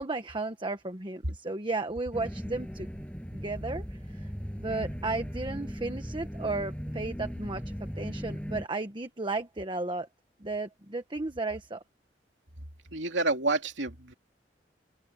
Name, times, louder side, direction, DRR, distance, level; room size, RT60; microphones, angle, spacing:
voice 1, 0.0-2.9 3.3-4.0 4.6-10.1 10.4-11.8, right 3 dB, 25° right, 1.3 m, -34 dB
sound 1, 2.1-8.7, equal, 5° left, 6.5 m, -38 dB
voice 2, 12.9-14.1, right 2 dB, 90° right, 2.9 m, -29 dB
open air
head